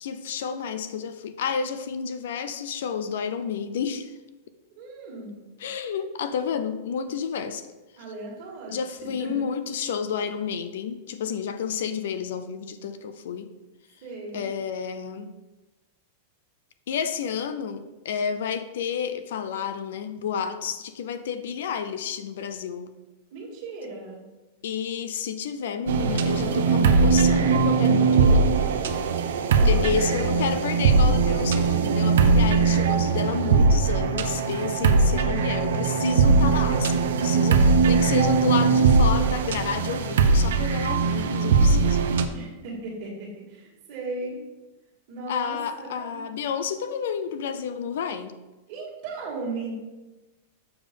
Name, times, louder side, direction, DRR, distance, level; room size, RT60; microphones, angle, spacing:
voice 1, 0.0-4.1 5.6-7.6 8.7-13.5 14.3-15.3 16.9-22.9 24.6-28.5 29.6-42.1 45.3-48.3, left 7 dB, 70° left, 11 dB, 0.5 m, -30 dB
voice 2, 4.8-5.4 8.0-8.8 9.2-9.5 14.0-14.5 23.3-24.2 29.5-29.9 30.2-30.3 34.8-35.1 42.3-44.4 45.1-46.2 48.7-49.7, right 3 dB, 40° right, -2 dB, 1.9 m, -36 dB
sound 1, 25.9-42.3, right 4 dB, 75° right, 0.6 m, -20 dB
7.0 x 5.2 x 3.7 m, 1.1 s
supercardioid pair, 175°, 0 cm